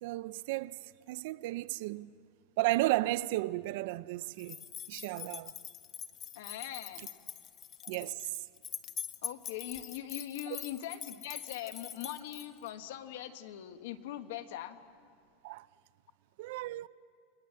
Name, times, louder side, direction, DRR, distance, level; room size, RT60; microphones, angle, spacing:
voice 1, 0.0-2.1 2.6-5.5 7.8-8.3 15.4-15.7 16.4-16.9, right 18 dB, 60° right, 0.5 m, -34 dB
sound 1, 4.4-12.7, left 9 dB, 25° left, 0.7 m, -44 dB
voice 2, 6.3-7.1 9.2-14.8, left 12 dB, 75° left, 1.5 m, -41 dB
30.0 x 21.5 x 7.6 m
supercardioid pair, 160°, 0 cm